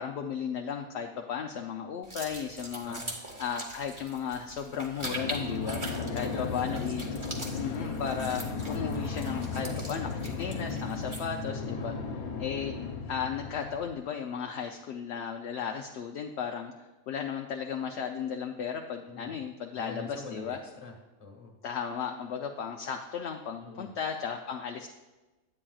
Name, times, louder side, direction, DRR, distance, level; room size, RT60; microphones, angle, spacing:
voice 1, 0.0-3.0 3.4-5.8 6.1-7.0 7.6-11.9 12.4-12.7 13.1-20.6 21.6-24.9, left 7 dB, 65° left, 3 dB, 0.7 m, -35 dB
sound 1, 2.0-11.4, right 1 dB, 25° right, 0.9 m, -42 dB
voice 2, 2.8-3.1 5.5-6.9 11.8-12.1 19.0-19.4 19.7-21.6 23.6-23.9, left 3 dB, 30° left, 0 dB, 1.2 m, -44 dB
sound 2, 5.0-13.9, left 4 dB, 90° left, 1.2 m, -35 dB
9.7 x 8.7 x 2.3 m, 1.1 s
omnidirectional pair, 1.5 m